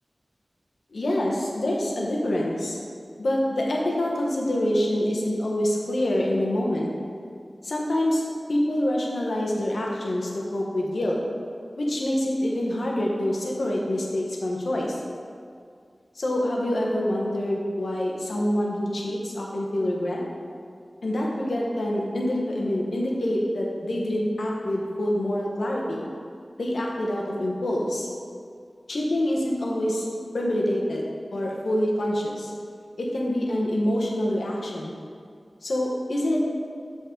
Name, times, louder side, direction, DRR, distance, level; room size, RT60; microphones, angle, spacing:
voice 1, 0.9-2.8 3.2-6.9 7.6-8.2 8.5-11.2 11.8-15.0 16.1-20.2 21.0-26.1 26.6-28.1 28.9-30.0 30.3-31.0 31.3-32.5 33.0-34.9 35.6-36.4, left 1 dB, 90° left, -2 dB, 1.0 m, -26 dB
6.6 x 5.4 x 3.8 m, 2.2 s
wide cardioid pair, 70°, 0 cm